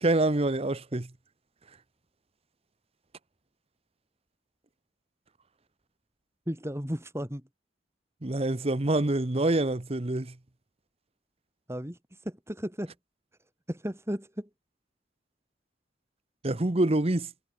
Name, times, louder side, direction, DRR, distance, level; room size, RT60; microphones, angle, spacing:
voice 1, 0.0-1.1 8.2-10.3 16.4-17.3, right 2 dB, 35° right, 1.0 m, -26 dB
voice 2, 6.5-7.4 11.7-12.9 13.7-14.5, equal, 15° right, 4.1 m, -35 dB
head